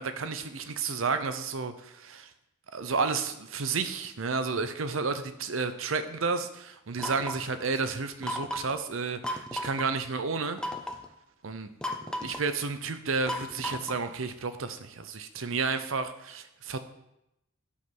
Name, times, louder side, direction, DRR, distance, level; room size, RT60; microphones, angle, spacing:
voice 1, 0.0-2.3 2.7-10.6 11.4-11.7 12.2-16.8, right 4 dB, 85° right, 10 dB, 0.7 m, -31 dB
sound 1, 7.0-7.5 8.2-8.8 9.2-9.9 10.6-11.0 11.8-12.5 13.3-14.1, left 1 dB, 5° left, 0.6 m, -35 dB
8.2 x 5.5 x 6.0 m, 0.85 s
head